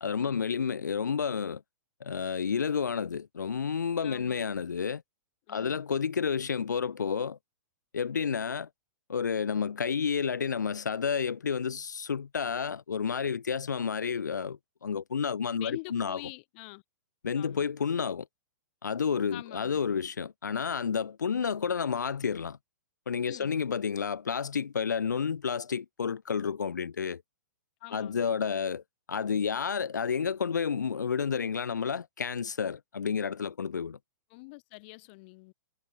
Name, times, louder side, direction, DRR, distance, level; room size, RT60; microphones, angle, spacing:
voice 1, 0.0-1.6 2.0-5.0 5.5-7.4 7.9-8.7 9.1-16.2 17.2-18.3 18.8-22.6 23.1-27.2 27.9-28.8 29.1-34.0, left 6 dB, 70° left, 0.5 m, -30 dB
voice 2, 4.0-4.4 5.5-5.8 15.5-16.8 17.3-17.7 19.3-19.8 23.3-23.5 27.8-28.4 34.3-35.5, left 27 dB, 40° left, 0.8 m, -45 dB
figure-of-eight pair, 110°, 10 cm